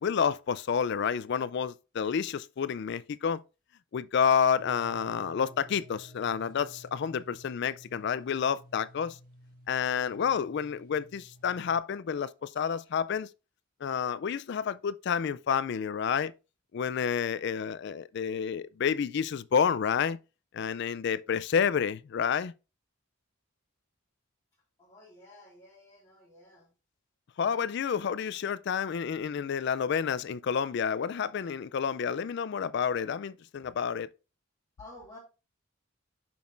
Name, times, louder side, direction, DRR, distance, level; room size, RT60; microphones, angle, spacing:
voice 1, 0.0-3.4 3.9-9.2 9.7-13.3 13.8-16.3 16.7-20.2 20.5-22.5 27.4-34.1, left 7 dB, 55° left, 0.3 m, -29 dB
sound 1, 4.6-11.8, equal, 45° right, 1.5 m, -53 dB
voice 2, 24.8-26.7 34.8-35.2, left 1 dB, 20° left, 2.3 m, -52 dB
7.0 x 6.2 x 2.5 m
head